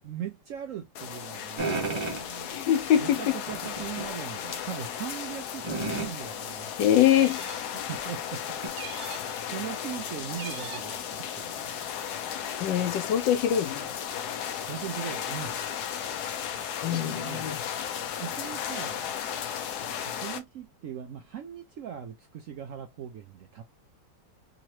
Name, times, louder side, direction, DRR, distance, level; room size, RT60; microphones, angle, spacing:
voice 1, 0.0-2.6 3.0-6.8 7.7-8.8 9.2-12.0 14.6-15.6 16.9-17.5 18.2-19.1 20.0-23.6, right 9 dB, 70° right, 0.7 m, -40 dB
sound 1, 0.9-20.4, left 8 dB, 70° left, 1.1 m, -35 dB
sound 2, 1.6-2.3 3.5-4.1 4.5-4.6 5.6-6.1 7.4-7.5 7.9-8.0 8.6-8.7, right 3 dB, 30° right, 0.5 m, -32 dB
voice 2, 2.4-3.4 6.8-7.4 12.6-13.9 16.8-17.6, left 10 dB, 90° left, 1.4 m, -24 dB
sound 3, 7.1-7.8 8.7-9.4 10.3-11.0, right 7 dB, 90° right, 1.5 m, -42 dB
3.7 x 2.9 x 2.9 m
omnidirectional pair, 1.9 m